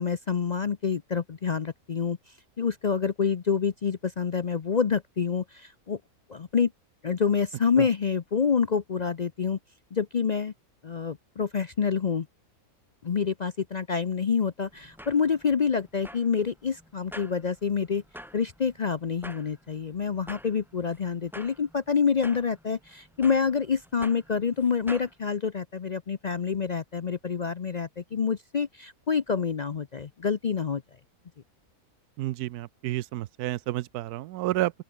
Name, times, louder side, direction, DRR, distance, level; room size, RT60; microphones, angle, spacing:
voice 1, 0.0-6.0 6.3-6.7 7.0-9.6 9.9-10.5 10.8-12.3 13.0-18.0 18.3-30.8, left 6 dB, 55° left, 0.4 m, -27 dB
sound 1, 14.7-25.1, equal, ahead, 4.5 m, -48 dB
voice 2, 32.2-34.7, right 15 dB, 85° right, 1.1 m, -30 dB
open air
omnidirectional pair, 1.6 m